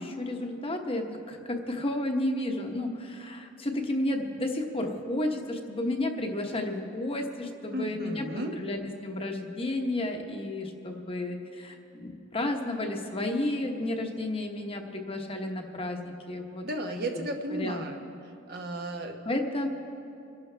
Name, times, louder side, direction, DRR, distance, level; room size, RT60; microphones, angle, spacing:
voice 1, 0.0-16.6 17.1-17.8 19.2-19.7, left 1 dB, 25° left, 3 dB, 1.0 m, -32 dB
voice 2, 7.7-8.5 16.6-18.0 18.5-19.1, right 1 dB, 50° right, 3 dB, 1.1 m, -34 dB
26.5 x 11.5 x 3.4 m, 2.7 s
head